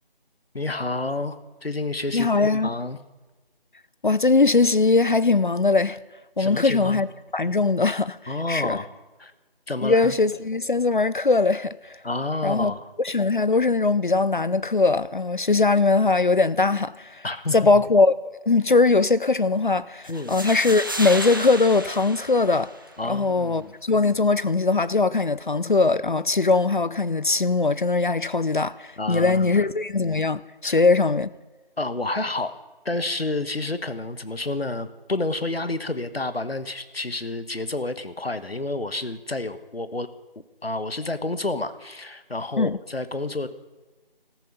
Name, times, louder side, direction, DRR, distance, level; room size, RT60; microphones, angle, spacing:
voice 1, 0.5-3.0 6.4-7.0 8.3-8.9 9.2-9.3 9.7-10.1 12.0-12.9 17.2-17.8 20.1-20.4 23.0-23.7 29.0-29.6 30.6-30.8 31.8-32.5 32.8-40.1 40.3-43.5, left 2 dB, 90° left, 1.3 m, -29 dB
voice 2, 2.1-2.7 4.0-6.0 6.4-7.1 7.3-8.8 9.8-12.0 12.4-12.7 13.0-17.2 17.5-22.7 23.0-31.3 42.6-42.8, left 3 dB, 55° left, 0.5 m, -21 dB
sound 1, 20.0-23.1, right 1 dB, 20° right, 1.0 m, -33 dB
15.0 x 14.0 x 5.3 m
figure-of-eight pair, 165°, 29 cm